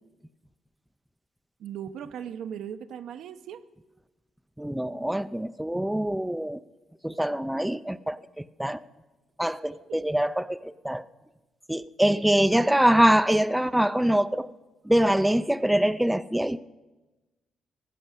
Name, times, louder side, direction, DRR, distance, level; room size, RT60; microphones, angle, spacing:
voice 1, 1.6-3.6 9.7-10.0 12.1-12.2 12.5-12.8, right 9 dB, 75° right, 9 dB, 0.8 m, -38 dB
voice 2, 4.6-6.6 7.0-8.8 9.4-11.1 11.7-14.5 14.8-16.6, right 1 dB, 5° right, 13 dB, 0.4 m, -24 dB
16.5 x 6.3 x 9.7 m, 1.1 s
cardioid pair, 90°, 0 cm